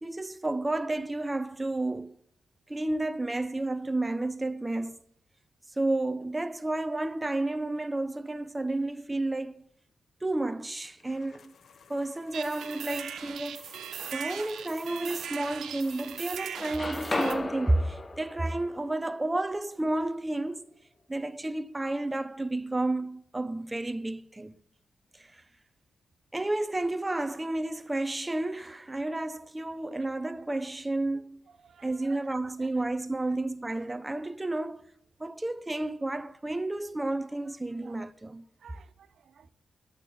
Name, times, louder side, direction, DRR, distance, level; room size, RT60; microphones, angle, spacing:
voice 1, 0.0-2.1 2.7-5.0 5.8-9.6 10.2-11.5 11.9-13.7 14.1-20.6 21.1-24.6 25.1-25.4 26.3-31.4 31.8-34.9 35.2-38.4, right 2 dB, 15° right, 0.6 m, -31 dB
sound 1, 11.0-17.5, left 5 dB, 60° left, 1.0 m, -57 dB
sound 2, 12.3-17.3, right 8 dB, 85° right, 1.2 m, -39 dB
sound 3, 13.7-14.5 15.1-16.1 16.4-20.3, left 2 dB, 25° left, 0.8 m, -37 dB
voice 2, 31.6-32.7 37.8-38.0 38.6-39.5, right 7 dB, 65° right, 0.7 m, -54 dB
13.5 x 7.2 x 9.9 m
cardioid pair, 110°, 0 cm